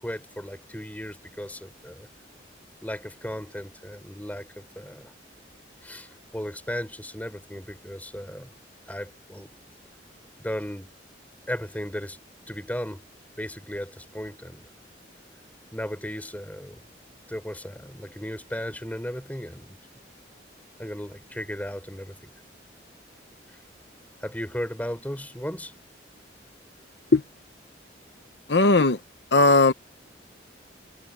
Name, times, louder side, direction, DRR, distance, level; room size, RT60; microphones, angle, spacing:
voice 1, 0.0-2.1 2.8-5.1 5.8-8.6 8.9-9.6 10.4-10.9 11.5-12.2 12.5-13.1 13.4-14.7 15.7-16.9 17.3-19.8 20.8-22.3 23.5-23.6 24.2-25.8, equal, 10° left, 4.9 m, -36 dB
voice 2, 28.5-29.0 29.3-29.7, left 3 dB, 70° left, 0.9 m, -17 dB
head